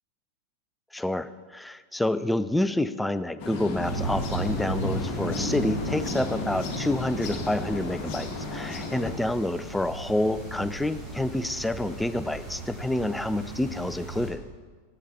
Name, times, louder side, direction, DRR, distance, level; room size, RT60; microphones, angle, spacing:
voice 1, 0.9-14.4, left 1 dB, 5° left, 13 dB, 0.3 m, -28 dB
sound 1, 3.4-9.1, left 3 dB, 40° left, 1.3 m, -33 dB
sound 2, 3.8-14.3, right 1 dB, 15° right, 3.0 m, -36 dB
8.3 x 8.1 x 4.2 m, 1.5 s
figure-of-eight pair, 90°, 0 cm